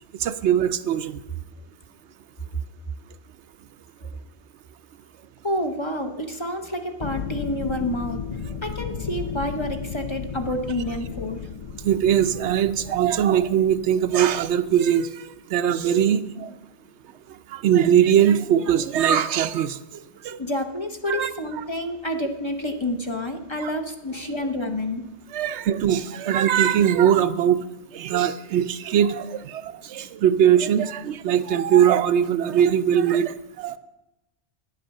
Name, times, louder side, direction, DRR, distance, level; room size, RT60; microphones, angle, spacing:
voice 1, 0.2-1.2 11.8-16.5 17.5-19.8 20.2-20.4 21.1-21.3 23.6-23.7 25.3-27.6 27.9-33.8, right 9 dB, 80° right, 11 dB, 0.9 m, -21 dB
voice 2, 5.4-8.2 8.6-11.4 20.4-25.0, left 1 dB, 30° left, 4 dB, 0.8 m, -28 dB
sound 1, 7.0-14.8, left 7 dB, 60° left, 0.3 m, -35 dB
10.5 x 8.5 x 6.4 m, 0.97 s
omnidirectional pair, 1.1 m